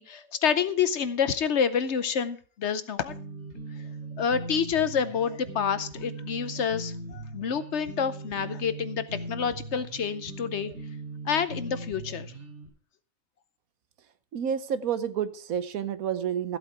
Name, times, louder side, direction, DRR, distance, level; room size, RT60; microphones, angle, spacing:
voice 1, 0.0-3.1 4.2-10.7 11.3-12.3, left 7 dB, 60° left, 13 dB, 1.0 m, -28 dB
sound 1, 3.1-12.7, right 2 dB, 50° right, 3.4 m, -39 dB
voice 2, 14.3-16.6, right 8 dB, 80° right, 13 dB, 1.3 m, -29 dB
15.0 x 8.1 x 4.7 m, 0.42 s
omnidirectional pair, 1.5 m